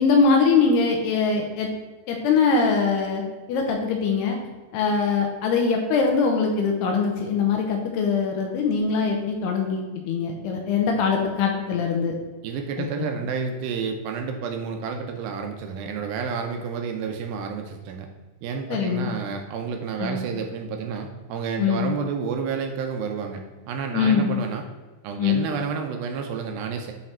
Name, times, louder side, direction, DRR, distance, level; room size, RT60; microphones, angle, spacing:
voice 1, 0.0-1.7 2.1-3.2 3.5-4.4 4.7-12.1 12.8-12.9 18.7-19.1 20.0-20.2 21.6-22.0 23.9-24.4 25.2-25.5, left 5 dB, 85° left, 2 dB, 2.7 m, -22 dB
voice 2, 12.4-18.1 18.4-24.6 25.0-26.9, right 5 dB, 80° right, 4 dB, 2.1 m, -30 dB
8.2 x 3.3 x 4.2 m, 1.3 s
omnidirectional pair, 4.7 m